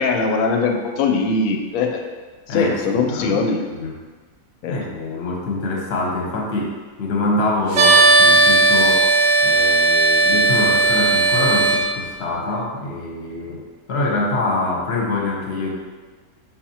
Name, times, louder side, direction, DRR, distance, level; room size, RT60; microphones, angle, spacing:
voice 1, 0.0-2.0 2.5-3.6 4.6-4.8, left 4 dB, 75° left, 3 dB, 1.0 m, -21 dB
voice 2, 2.5-3.4 3.7-4.0 4.7-9.1 9.4-13.6 13.9-15.7, left 2 dB, 50° left, -1 dB, 1.0 m, -25 dB
sound 1, 7.7-11.8, right 3 dB, 65° right, 1.0 m, -15 dB
4.4 x 4.1 x 2.8 m, 1.4 s
omnidirectional pair, 1.6 m